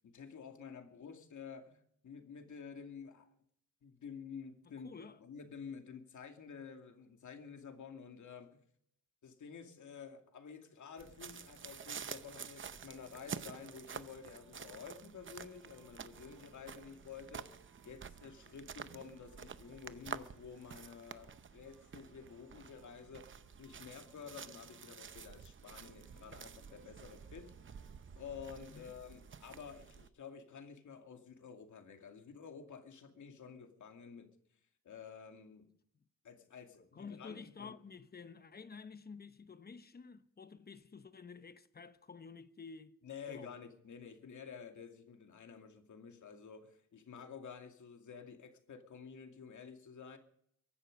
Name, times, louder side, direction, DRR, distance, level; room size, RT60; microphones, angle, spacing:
voice 1, 0.0-3.3 3.8-4.9 5.2-8.6 9.2-17.5 17.8-23.3 23.6-27.5 28.2-34.3 34.8-35.6 36.2-37.7 43.0-50.2, left 6 dB, 60° left, 2.4 m, -51 dB
voice 2, 4.7-5.2 28.7-28.9 36.8-42.9 43.3-43.6, left 5 dB, 30° left, 0.9 m, -51 dB
sound 1, 11.0-30.1, right 7 dB, 35° right, 0.7 m, -50 dB
sound 2, 12.9-28.9, right 3 dB, 75° right, 4.0 m, -71 dB
23.5 x 11.5 x 5.2 m
wide cardioid pair, 175°, 34 cm